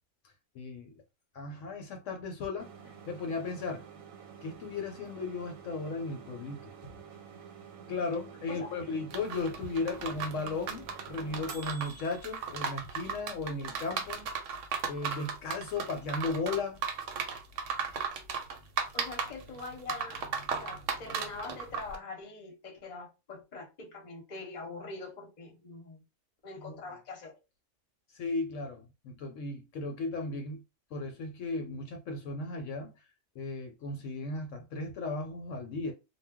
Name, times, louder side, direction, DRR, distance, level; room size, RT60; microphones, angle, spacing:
voice 1, 0.5-0.9 1.3-2.7 3.1-3.9 4.4-6.9 7.9-14.3 14.9-16.8 26.6-26.8 28.1-30.6 30.9-32.9 33.4-35.9, left 3 dB, 75° left, 0.9 m, -36 dB
sound 1, 2.6-12.3, right 7 dB, 90° right, 1.1 m, -49 dB
sound 2, 9.1-22.0, right 6 dB, 70° right, 0.9 m, -36 dB
voice 2, 18.9-26.0 26.4-27.4, left 3 dB, 40° left, 0.7 m, -44 dB
2.2 x 2.1 x 3.5 m
omnidirectional pair, 1.4 m